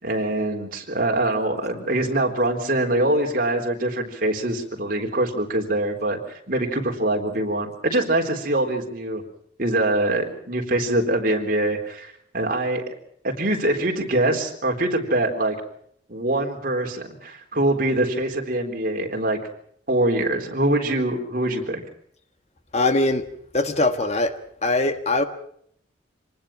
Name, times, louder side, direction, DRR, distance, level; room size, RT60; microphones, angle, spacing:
voice 1, 0.0-9.2 9.6-12.9 13.2-15.6 16.1-19.4 19.9-21.8, right 1 dB, 50° right, 3.8 m, -24 dB
voice 2, 22.7-23.2 23.5-24.3 24.6-25.2, left 2 dB, 35° left, 1.5 m, -21 dB
26.0 x 19.5 x 6.1 m
head